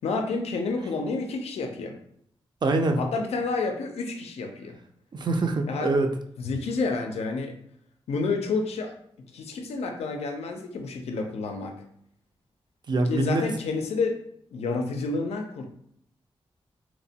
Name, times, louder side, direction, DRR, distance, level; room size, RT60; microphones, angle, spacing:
voice 1, 0.0-2.0 3.0-4.8 5.7-5.9 6.4-7.5 8.1-8.9 9.3-11.8 13.1-14.2 14.5-15.6, left 3 dB, 85° left, 4 dB, 0.4 m, -29 dB
voice 2, 2.6-3.0 5.1-6.1 12.9-13.4, right 2 dB, 45° right, 6 dB, 0.4 m, -24 dB
3.0 x 2.1 x 2.7 m, 0.70 s
cardioid pair, 65°, 10 cm